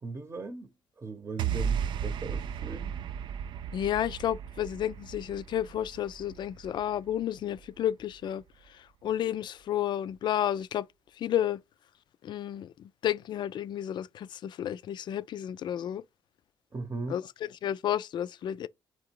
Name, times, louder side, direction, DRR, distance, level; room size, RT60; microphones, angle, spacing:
voice 1, 0.0-0.7 1.0-2.9 16.7-17.2, right 3 dB, 30° right, 0.8 m, -38 dB
sound 1, 1.4-7.8, right 8 dB, 65° right, 0.4 m, -35 dB
voice 2, 3.7-8.4 9.0-10.9 11.2-11.6 12.2-16.0 17.1-17.2 17.6-18.7, left 11 dB, 60° left, 0.3 m, -31 dB
3.8 x 2.9 x 4.5 m
supercardioid pair, 70°, 9 cm